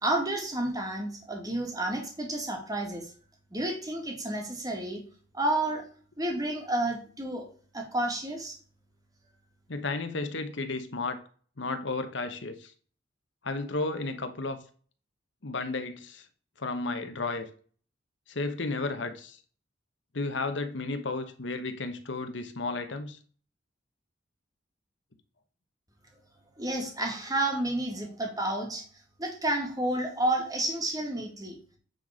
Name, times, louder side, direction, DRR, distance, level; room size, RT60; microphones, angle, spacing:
voice 1, 0.0-3.1 3.5-5.0 5.3-5.8 6.2-7.4 7.7-8.5 26.6-28.8 29.2-31.6, right 1 dB, 20° right, 2 dB, 2.0 m, -30 dB
voice 2, 9.7-11.2 11.6-12.7 13.4-14.6 15.4-16.2 16.6-17.5 18.3-19.4 20.1-23.2, left 3 dB, 65° left, 9 dB, 1.1 m, -33 dB
9.1 x 4.2 x 5.1 m, 0.43 s
head